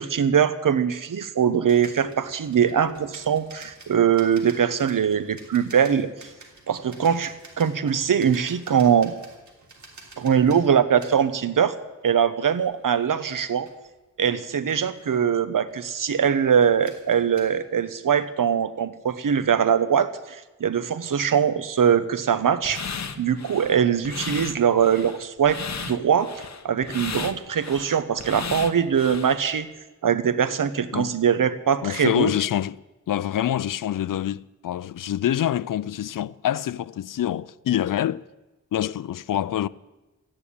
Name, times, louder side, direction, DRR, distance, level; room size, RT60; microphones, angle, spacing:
voice 1, 0.0-6.1 6.7-9.1 10.2-11.7 12.0-13.7 14.2-22.8 23.2-29.7 30.0-32.3, right 8 dB, 85° right, 0.9 m, -22 dB
sound 1, 1.7-11.5 11.8-12.0 12.6-14.1 14.9-15.2 15.7-16.1 16.5-17.5, right 3 dB, 65° right, 3.2 m, -49 dB
sound 2, 22.6-29.4, left 5 dB, 60° left, 1.1 m, -35 dB
voice 2, 31.8-38.3 38.7-39.7, left 11 dB, 85° left, 0.5 m, -26 dB
14.0 x 9.8 x 9.9 m
wide cardioid pair, 85°, 32 cm